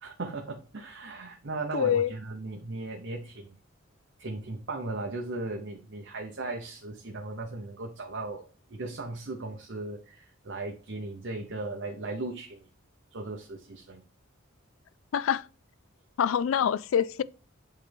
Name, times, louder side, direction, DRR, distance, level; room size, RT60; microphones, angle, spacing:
voice 1, 0.0-3.5 4.2-8.4 8.7-12.7 13.1-14.0, right 2 dB, 60° right, 0.9 m, -37 dB
voice 2, 1.7-2.1 15.1-15.4 16.2-17.2, left 8 dB, 75° left, 0.3 m, -25 dB
8.4 x 3.3 x 3.4 m
head